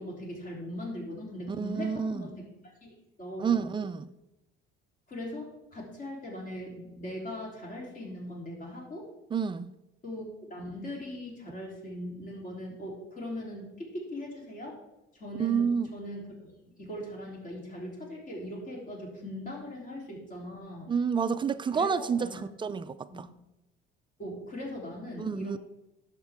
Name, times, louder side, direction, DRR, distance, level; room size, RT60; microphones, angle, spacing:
voice 1, 0.0-2.4 2.8-2.9 3.2-3.6 5.1-9.1 10.0-14.8 15.1-16.5 16.8-20.9 21.7-22.5 23.1-23.3 24.2-25.6, left 1 dB, 40° left, 3.3 m, -40 dB
voice 2, 1.5-2.3 3.4-4.1 9.3-9.7 15.4-15.9 20.9-23.3 25.2-25.6, right 6 dB, 25° right, 0.4 m, -29 dB
11.0 x 7.3 x 3.5 m
cardioid pair, 120°, 21 cm